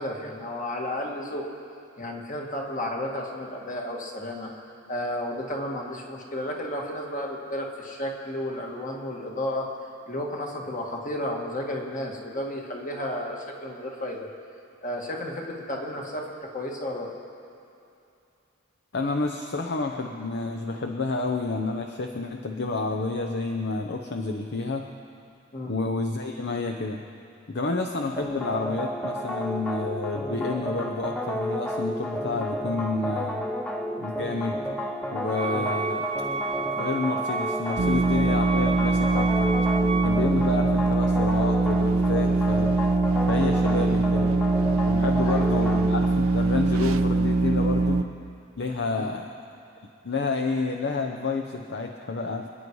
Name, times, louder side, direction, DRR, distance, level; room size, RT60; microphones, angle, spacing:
voice 1, 0.0-1.5 2.0-4.5 4.9-9.7 10.1-14.3 14.8-17.1 25.5-25.7 35.5-35.7 40.4-40.6 43.9-44.0 45.2-45.6 49.0-49.1, left 1 dB, 40° left, 0 dB, 2.1 m, -32 dB
voice 2, 18.9-24.9 25.6-27.0 27.5-33.4 34.0-34.6 35.1-36.1 36.5-39.5 40.0-42.7 43.3-44.3 44.9-48.0 48.6-49.3 50.0-52.5, left 3 dB, 55° left, 3 dB, 0.8 m, -29 dB
sound 1, 28.2-46.1, equal, 5° left, 1.1 m, -31 dB
Wind instrument woodwind instrument, 35.3-40.2, right 4 dB, 30° right, 0.6 m, -31 dB
sound 2, 37.8-48.0, right 3 dB, 85° right, 0.7 m, -23 dB
28.0 x 9.9 x 4.7 m, 2.7 s
head